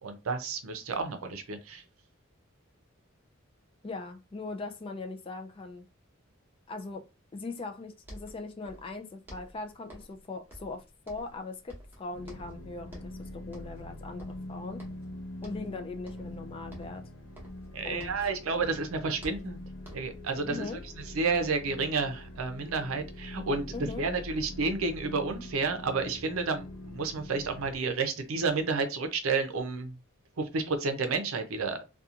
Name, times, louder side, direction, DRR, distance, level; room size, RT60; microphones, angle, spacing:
voice 1, 0.0-1.8 17.7-19.6 19.9-20.7 21.1-23.7 24.0-30.0 30.4-31.8, right 4 dB, 80° right, 0.5 m, -31 dB
voice 2, 3.8-5.9 6.7-14.8 15.4-17.0 17.8-18.1 20.5-20.8 23.7-24.1, left 3 dB, 25° left, 0.3 m, -40 dB
sound 1, 7.7-7.8 8.0-9.0 9.3-10.2 10.5-11.4 11.7-12.6 12.9-13.2 13.5-13.9 14.2-15.1 15.4-15.7 16.0-16.4 16.7-18.3 18.6-20.2, equal, 10° right, 0.9 m, -50 dB
sound 2, 12.1-27.8, left 1 dB, 75° left, 0.5 m, -43 dB
2.8 x 2.3 x 2.4 m
head